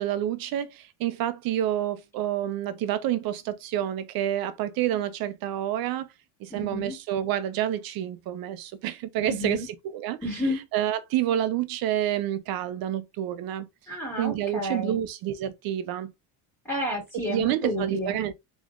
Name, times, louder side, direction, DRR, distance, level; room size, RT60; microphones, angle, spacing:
voice 1, 0.0-6.1 6.4-10.2 10.7-13.7 14.2-16.1 17.1-18.3, right 11 dB, 50° right, 0.6 m, -28 dB
voice 2, 6.5-7.0 9.2-9.7 10.2-10.6 13.9-15.0 16.6-18.2, equal, 5° left, 2.2 m, -31 dB
3.7 x 3.0 x 2.4 m
cardioid pair, 145°, 47 cm